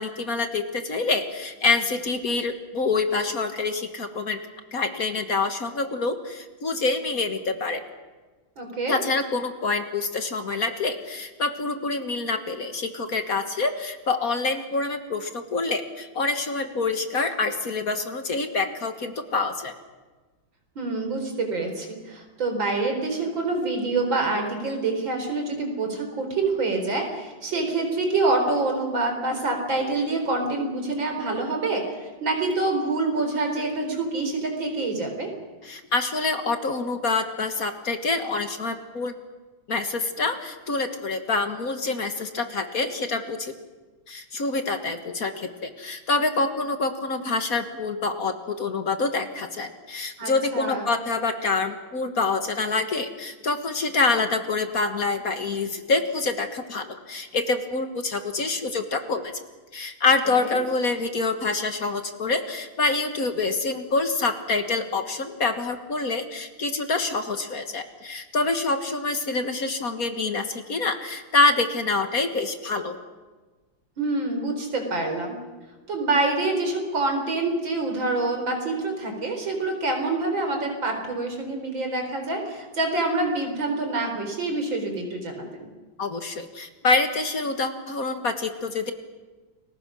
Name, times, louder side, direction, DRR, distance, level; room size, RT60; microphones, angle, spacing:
voice 1, 0.0-4.4 4.7-7.8 8.9-19.7 35.6-39.1 39.7-43.5 44.1-59.3 59.7-73.0 86.0-88.9, left 3 dB, 50° left, 7 dB, 1.9 m, -26 dB
voice 2, 8.6-9.0 20.8-35.3 50.2-50.9 60.4-60.6 74.0-75.4 75.9-85.7, right 2 dB, 70° right, 4 dB, 4.9 m, -26 dB
30.0 x 21.5 x 6.3 m, 1.3 s
omnidirectional pair, 2.1 m